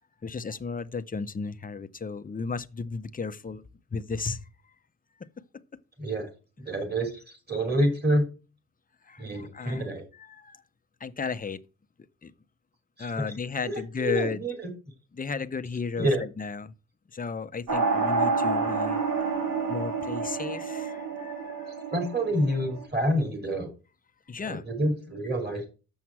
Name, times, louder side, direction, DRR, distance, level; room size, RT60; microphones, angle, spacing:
voice 1, 0.2-3.6 3.9-4.4 9.1-9.9 10.2-10.6 11.0-11.6 12.2-12.3 13.0-14.4 15.1-16.7 17.1-19.0 19.7-21.8 24.3-24.6, left 5 dB, 25° left, 0.6 m, -34 dB
voice 2, 6.0-6.3 6.6-7.2 7.5-8.3 9.2-10.1 13.0-14.7 16.0-16.2 21.9-23.7 24.4-25.7, right 1 dB, 30° right, 3.6 m, -28 dB
sound 1, 17.7-22.9, right 4 dB, 70° right, 2.9 m, -29 dB
7.1 x 6.1 x 7.2 m
wide cardioid pair, 105°, 35 cm